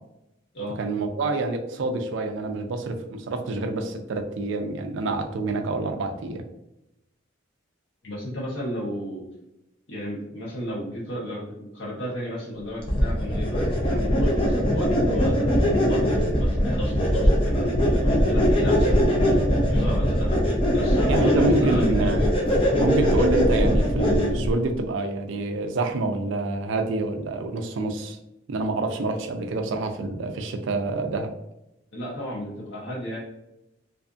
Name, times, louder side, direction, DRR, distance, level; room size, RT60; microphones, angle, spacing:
voice 1, 0.8-6.4 21.1-22.4 22.7-28.2 28.5-31.3, right 2 dB, 65° right, 6 dB, 0.4 m, -27 dB
voice 2, 8.0-9.2 9.9-22.3 31.9-33.2, equal, 60° left, -7 dB, 0.8 m, -34 dB
sound 1, 12.9-24.5, equal, 25° left, 0.4 m, -21 dB
2.5 x 2.5 x 2.3 m, 0.88 s
head